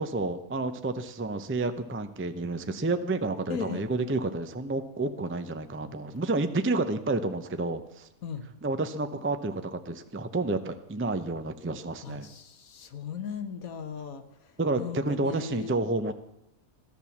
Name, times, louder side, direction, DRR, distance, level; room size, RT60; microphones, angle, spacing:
voice 1, 0.0-8.1 8.6-12.3 14.6-16.1, right 2 dB, 15° right, 9 dB, 0.5 m, -30 dB
voice 2, 3.5-3.9 8.2-8.5 12.0-14.2 14.8-15.7, left 6 dB, 75° left, 9 dB, 1.6 m, -37 dB
15.5 x 11.5 x 7.2 m, 0.84 s
omnidirectional pair, 1.5 m